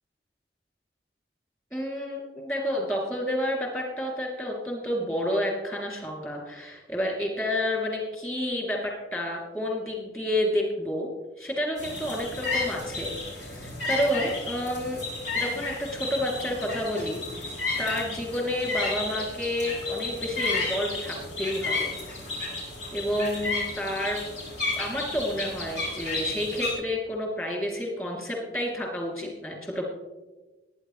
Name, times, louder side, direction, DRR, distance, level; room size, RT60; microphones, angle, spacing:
voice 1, 1.7-11.1 11.4-15.0 15.3-21.9 22.9-24.2 24.8-29.8, left 1 dB, 15° left, -2 dB, 3.0 m, -30 dB
sound 1, 11.8-26.7, left 3 dB, 80° left, 5.2 m, -32 dB
20.5 x 9.6 x 3.3 m, 1.2 s
head